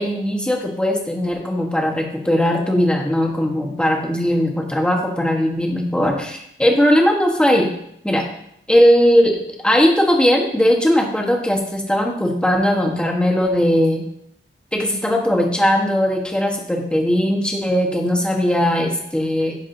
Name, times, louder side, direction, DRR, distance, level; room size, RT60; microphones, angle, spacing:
voice 1, 0.0-7.7 8.0-8.2 8.7-9.4 9.6-14.0 14.7-19.5, equal, 5° left, 0 dB, 1.2 m, -18 dB
10.0 x 4.8 x 2.7 m, 0.73 s
wide cardioid pair, 110°, 21 cm